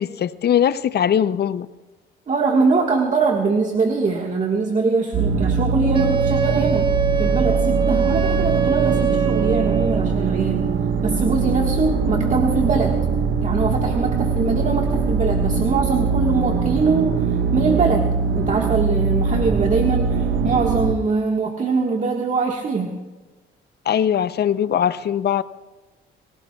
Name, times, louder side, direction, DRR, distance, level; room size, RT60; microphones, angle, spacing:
voice 1, 0.0-1.7 23.9-25.4, left 9 dB, 55° left, 14 dB, 0.6 m, -20 dB
voice 2, 2.3-6.9 7.2-10.7 11.0-13.0 13.4-18.1 18.3-23.0, right 4 dB, 40° right, 1 dB, 1.6 m, -22 dB
sound 1, 5.1-20.9, right 5 dB, 65° right, 1.2 m, -21 dB
Wind instrument woodwind instrument, 5.9-10.1, right 6 dB, 25° right, 1.0 m, -23 dB
27.5 x 17.0 x 2.4 m, 1.2 s
cardioid pair, 90°, 20 cm